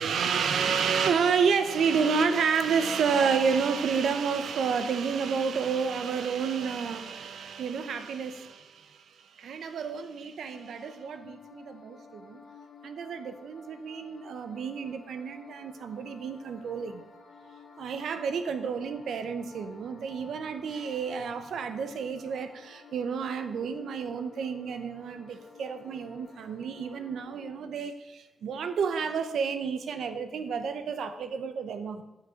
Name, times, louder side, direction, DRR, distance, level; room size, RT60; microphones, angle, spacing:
voice 1, 0.0-12.4 12.8-17.0 17.8-32.0, right 6 dB, 80° right, 10 dB, 0.7 m, -30 dB
sound 1, 10.4-27.6, left 4 dB, 80° left, 1.4 m, -53 dB
8.9 x 5.4 x 5.0 m, 1.0 s
wide cardioid pair, 150°, 0 cm